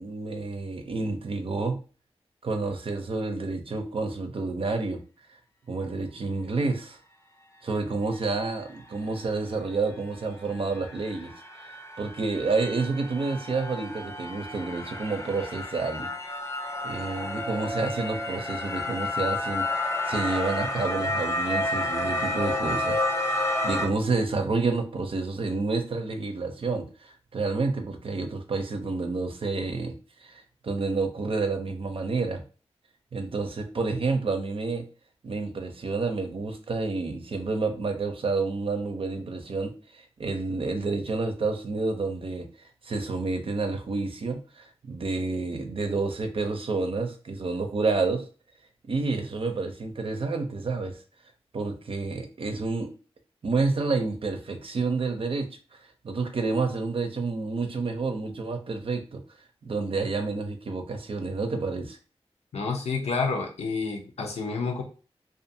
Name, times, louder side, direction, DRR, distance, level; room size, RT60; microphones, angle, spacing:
voice 1, 0.0-1.8 2.4-5.0 5.7-7.0 7.6-11.3 12.0-16.1 16.8-19.7 20.1-29.9 30.2-32.4 33.1-34.8 35.2-48.2 48.8-51.0 51.5-52.9 53.4-55.8 56.0-59.2 59.6-62.0, right 3 dB, 60° right, 6 dB, 0.5 m, -29 dB
sound 1, 9.3-9.4 9.8-23.9, left 1 dB, 25° left, 0.6 m, -31 dB
voice 2, 62.5-64.8, left 4 dB, 85° left, 2 dB, 0.6 m, -29 dB
2.5 x 2.4 x 2.6 m, 0.37 s
cardioid pair, 55°, 11 cm